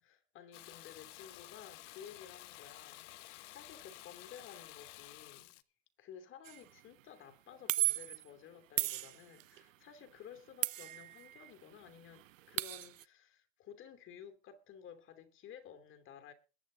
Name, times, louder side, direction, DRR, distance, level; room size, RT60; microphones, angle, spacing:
voice 1, 0.0-5.5 6.0-16.3, left 8 dB, 30° left, 2.9 m, -54 dB
Water tap faucet / Bathtub (filling or washing), 0.5-5.6, left 17 dB, 65° left, 1.2 m, -52 dB
sound 1, 6.5-6.7 7.7-8.2 8.8-9.6 10.6-11.5 11.8-11.9 12.2-13.0, right 16 dB, 90° right, 0.8 m, -36 dB
21.0 x 9.0 x 3.9 m
supercardioid pair, 130°, 38 cm